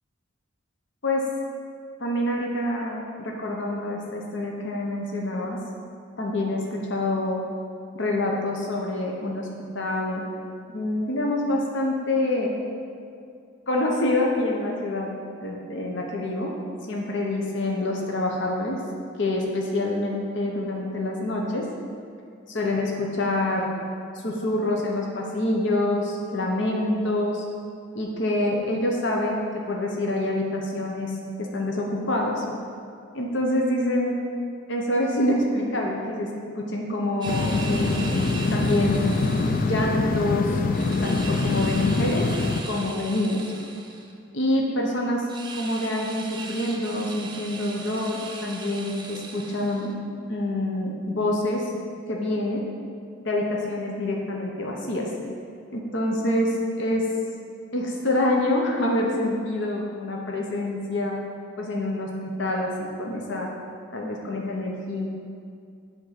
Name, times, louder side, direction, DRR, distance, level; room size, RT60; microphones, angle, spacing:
voice 1, 2.0-5.6 6.2-7.4 7.9-9.5 9.7-10.2 10.7-12.5 13.7-15.1 15.4-16.5 16.9-18.8 19.2-21.7 22.5-23.7 24.2-27.4 27.9-31.1 31.4-32.4 33.1-34.2 34.7-39.2 39.6-40.6 41.0-42.3 42.7-43.4 44.3-45.2 45.5-49.9 50.3-51.7 52.1-52.7 53.2-55.1 55.7-57.1 57.7-61.2 61.6-63.5 63.9-65.1, left 1 dB, 60° left, -1 dB, 0.9 m, -26 dB
sound 1, 37.2-39.9 40.7-44.1 45.3-49.9, right 4 dB, 25° right, 0.6 m, -39 dB
sound 2, 37.3-42.6, left 3 dB, 45° left, 0.4 m, -24 dB
8.3 x 3.7 x 5.8 m, 2.3 s
head